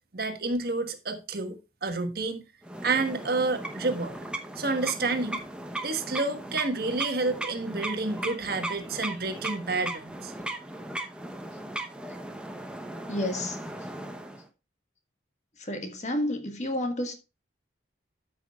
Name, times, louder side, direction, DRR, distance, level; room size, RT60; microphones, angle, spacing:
voice 1, 0.1-2.4 2.8-4.2 4.6-5.4 5.8-10.3, right 3 dB, 55° right, 1.4 m, -29 dB
sound 1, 2.6-14.5, right 1 dB, 5° right, 0.9 m, -37 dB
voice 2, 13.1-13.6 15.6-17.2, left 1 dB, 40° left, 1.5 m, -30 dB
13.0 x 5.9 x 2.4 m
head